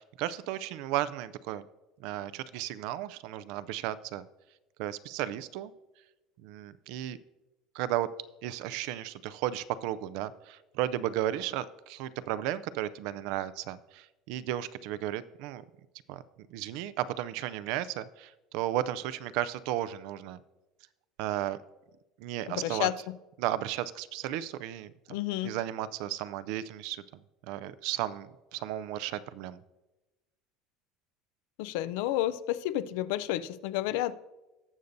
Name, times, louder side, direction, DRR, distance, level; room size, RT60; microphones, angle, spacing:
voice 1, 0.0-1.6 2.0-4.2 4.8-5.7 6.4-7.2 7.7-8.1 8.4-15.6 16.1-16.2 16.5-20.4 21.2-21.6 22.2-22.9 23.4-27.2 27.5-29.6, right 13 dB, 60° right, 16 dB, 0.4 m, -34 dB
voice 2, 22.6-22.9 25.1-25.5 31.6-34.2, left 14 dB, 70° left, 14 dB, 0.4 m, -30 dB
18.0 x 6.6 x 2.6 m, 1.0 s
cardioid pair, 165°, 0 cm